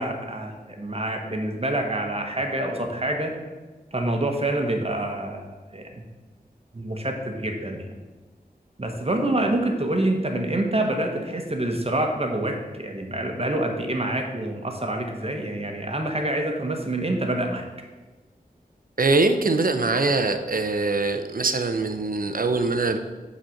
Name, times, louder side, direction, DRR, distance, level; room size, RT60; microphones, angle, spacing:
voice 1, 0.0-3.3 3.9-5.4 5.7-5.8 6.7-7.9 8.8-17.6, right 1 dB, 40° right, 3 dB, 1.2 m, -26 dB
voice 2, 19.0-23.0, right 3 dB, 65° right, 8 dB, 0.6 m, -23 dB
9.0 x 4.2 x 6.4 m, 1.2 s
wide cardioid pair, 60°, 16 cm